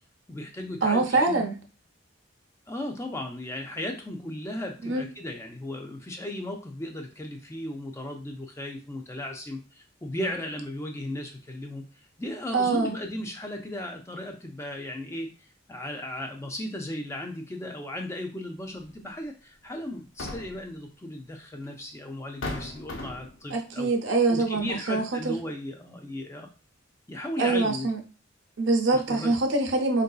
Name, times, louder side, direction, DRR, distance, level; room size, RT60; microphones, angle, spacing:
voice 1, 0.3-1.4 2.7-11.8 12.2-15.3 15.7-24.0 24.3-26.5 27.1-27.9 28.9-29.4, left 1 dB, 15° left, 2 dB, 0.4 m, -36 dB
voice 2, 0.8-1.5 4.8-5.0 12.5-12.9 23.5-25.4 27.4-28.0 28.6-30.0, right 3 dB, 65° right, 3 dB, 0.6 m, -24 dB
sound 1, 18.8-18.9 19.9-20.7 21.7-21.8 22.4-23.4, left 2 dB, 70° left, 0.5 m, -36 dB
3.6 x 2.6 x 2.3 m, 0.32 s
head